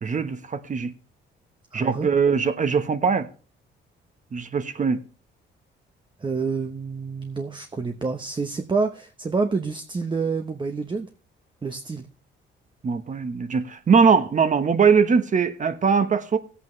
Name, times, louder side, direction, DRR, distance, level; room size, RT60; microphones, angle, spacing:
voice 1, 0.0-0.9 1.7-3.3 4.3-5.0 12.8-16.4, right 5 dB, 40° right, 1.3 m, -21 dB
voice 2, 1.7-2.1 6.2-11.1 11.6-12.1, right 4 dB, 25° right, 0.9 m, -28 dB
17.5 x 8.3 x 3.2 m
cardioid pair, 90°, 20 cm